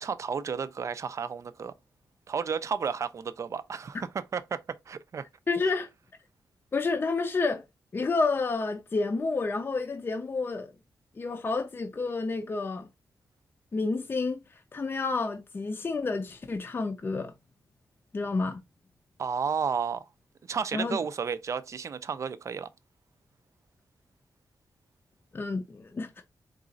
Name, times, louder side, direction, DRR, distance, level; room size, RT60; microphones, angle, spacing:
voice 1, 0.0-1.7 2.3-5.3 19.2-20.1 20.5-22.7, right 6 dB, 45° right, 0.4 m, -32 dB
voice 2, 5.5-5.9 6.7-7.6 7.9-10.7 11.2-12.9 13.7-14.4 14.7-17.3 18.1-18.6 20.7-21.0 25.3-26.2, left 3 dB, 30° left, 0.5 m, -29 dB
3.9 x 2.4 x 3.8 m
wide cardioid pair, 135°, 7 cm